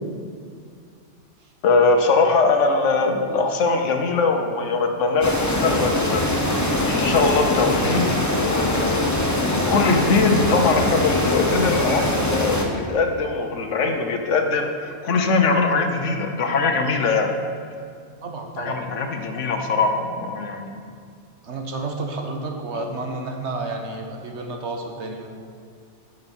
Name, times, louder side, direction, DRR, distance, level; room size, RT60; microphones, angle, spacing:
voice 1, 1.6-6.2 6.8-9.0 9.5-17.3 18.6-20.8 22.7-22.9, left 4 dB, 85° left, 5 dB, 1.2 m, -21 dB
sound 1, 5.2-12.6, left 1 dB, 15° left, 0.9 m, -22 dB
voice 2, 18.2-18.8 21.4-25.3, right 3 dB, 70° right, 3 dB, 1.3 m, -31 dB
8.9 x 6.5 x 6.1 m, 2.2 s
omnidirectional pair, 1.2 m